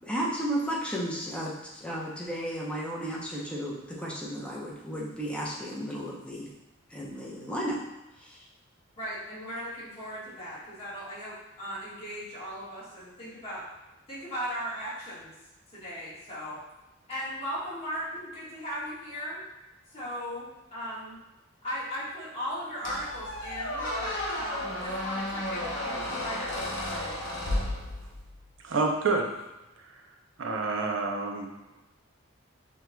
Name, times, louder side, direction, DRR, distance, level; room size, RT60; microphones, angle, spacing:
voice 1, 0.0-6.5 6.9-7.8 8.2-8.4, equal, 5° left, -5 dB, 0.7 m, -33 dB
voice 2, 9.0-13.6 14.1-15.3 15.7-16.6 17.1-19.4 19.9-21.2 21.6-27.2, equal, 30° left, -10 dB, 1.5 m, -37 dB
Squeak, 22.8-28.3, left 1 dB, 60° left, 0.9 m, -33 dB
voice 3, 28.6-29.3 30.4-31.5, right 3 dB, 65° right, 2 dB, 0.5 m, -27 dB
6.0 x 2.9 x 2.2 m, 1.0 s
head